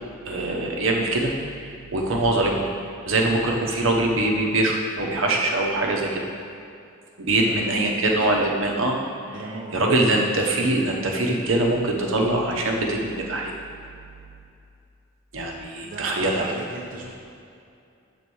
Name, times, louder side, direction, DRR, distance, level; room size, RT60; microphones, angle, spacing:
voice 1, 0.2-2.7 3.1-6.2 7.2-9.0 9.7-13.5 15.3-16.5, right 2 dB, 70° right, 1 dB, 0.9 m, -23 dB
voice 2, 7.3-8.1 9.2-10.0 15.8-17.1, right 2 dB, 40° right, -2 dB, 0.7 m, -37 dB
7.0 x 3.9 x 6.2 m, 2.5 s
head